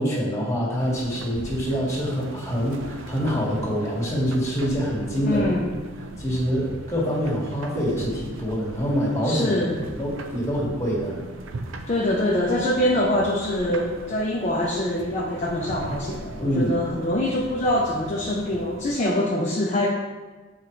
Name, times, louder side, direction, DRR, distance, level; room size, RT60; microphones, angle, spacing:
voice 1, 0.0-5.5 6.2-9.6 9.9-11.2 16.4-16.8, equal, 15° left, -5 dB, 1.9 m, -25 dB
sound 1, 0.8-19.0, right 2 dB, 75° right, 0.6 m, -39 dB
voice 2, 5.3-5.6 9.2-9.8 11.9-19.9, left 1 dB, 35° left, -4 dB, 0.6 m, -24 dB
7.9 x 4.4 x 3.2 m, 1.3 s
head